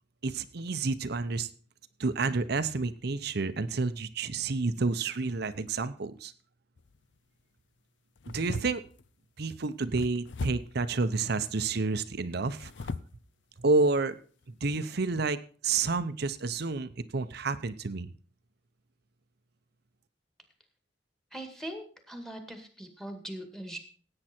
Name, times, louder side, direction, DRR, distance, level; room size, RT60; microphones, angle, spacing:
voice 1, 0.2-1.5 2.0-6.3 8.3-8.8 9.4-12.9 13.6-14.2 14.6-15.4 15.6-18.1, right 3 dB, 60° right, 12 dB, 0.8 m, -29 dB
sound 1, 6.8-7.1 8.2-9.1 10.0-10.8 12.4-13.2 13.8-13.9 14.4-14.6, left 4 dB, 75° left, 0.6 m, -40 dB
voice 2, 21.3-23.8, right 1 dB, 5° left, 5 dB, 2.0 m, -41 dB
16.5 x 8.8 x 4.4 m, 0.43 s
head